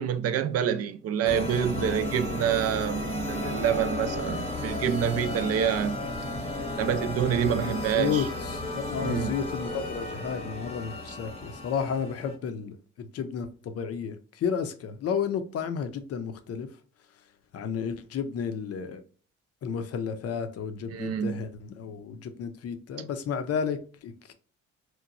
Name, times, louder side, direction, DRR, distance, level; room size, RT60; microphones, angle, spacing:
voice 1, 0.0-6.0 6.8-8.3 9.0-9.3 20.9-21.4, right 9 dB, 50° right, 0.4 m, -27 dB
sound 1, 1.2-12.4, left 2 dB, 20° left, 0.8 m, -34 dB
voice 2, 7.4-16.7 17.5-19.0 19.6-24.3, left 6 dB, 45° left, 0.6 m, -32 dB
2.9 x 2.1 x 2.4 m
supercardioid pair, 70°, 33 cm